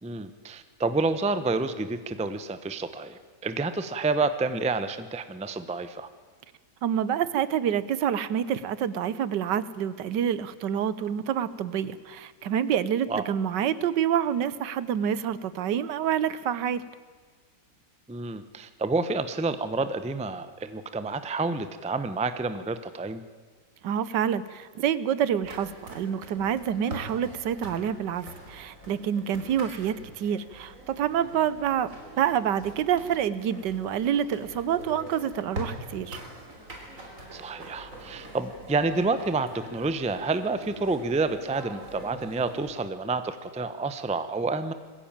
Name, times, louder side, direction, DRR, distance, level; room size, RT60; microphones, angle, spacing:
voice 1, 0.0-6.1 13.1-13.2 18.1-23.2 37.3-44.7, right 3 dB, 5° right, 11 dB, 0.5 m, -29 dB
voice 2, 6.8-16.8 23.8-36.2, right 9 dB, 80° right, 16 dB, 1.5 m, -27 dB
sound 1, 25.4-42.7, right 1 dB, 45° right, 3.9 m, -43 dB
21.5 x 15.5 x 8.9 m, 1.5 s
omnidirectional pair, 1.9 m